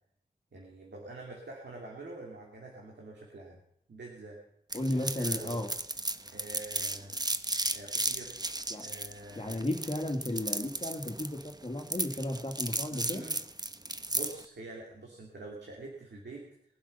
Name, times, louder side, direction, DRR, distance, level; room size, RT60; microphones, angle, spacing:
voice 1, 0.5-3.6 3.9-4.4 4.9-5.6 6.3-7.2 7.7-8.4 8.8-9.6 12.9-13.4 14.1-16.5, right 2 dB, 85° right, -2 dB, 2.8 m, -46 dB
voice 2, 4.7-5.7 8.7-8.9 9.4-13.2, left 1 dB, 35° left, 3 dB, 1.9 m, -34 dB
sound 1, 4.7-14.4, right 2 dB, 25° right, 1.0 m, -34 dB
21.5 x 7.6 x 5.6 m, 0.73 s
wide cardioid pair, 55°, 17 cm